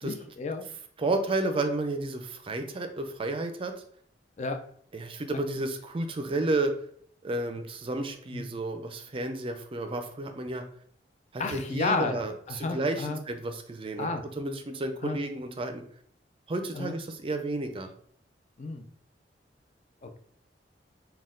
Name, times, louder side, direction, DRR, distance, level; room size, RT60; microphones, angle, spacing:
voice 1, 0.0-0.7 4.4-4.6 5.3-5.4 8.3-8.4 11.4-13.2 14.0-14.2 15.0-15.2 16.7-17.0 18.6-18.8 20.0-20.2, left 3 dB, 40° left, 6 dB, 0.4 m, -32 dB
voice 2, 1.0-3.8 4.9-6.7 7.2-10.6 11.3-15.8 16.5-17.9, right 2 dB, 30° right, 6 dB, 0.4 m, -31 dB
4.2 x 2.2 x 3.7 m, 0.62 s
head